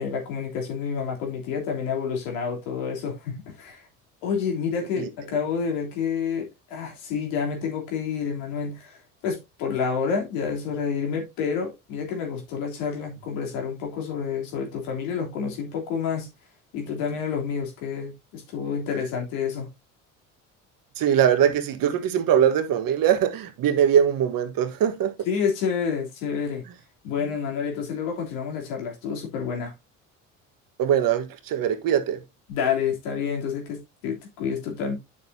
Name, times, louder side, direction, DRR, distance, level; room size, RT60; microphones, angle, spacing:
voice 1, 0.0-3.8 4.2-9.0 9.2-16.3 16.7-19.7 25.2-26.6 27.0-29.7 32.5-35.0, left 6 dB, 80° left, 3.4 m, -29 dB
voice 2, 21.0-25.1 30.8-32.2, right 9 dB, 60° right, 1.5 m, -22 dB
9.2 x 6.6 x 2.7 m
hypercardioid pair, 65°, 38 cm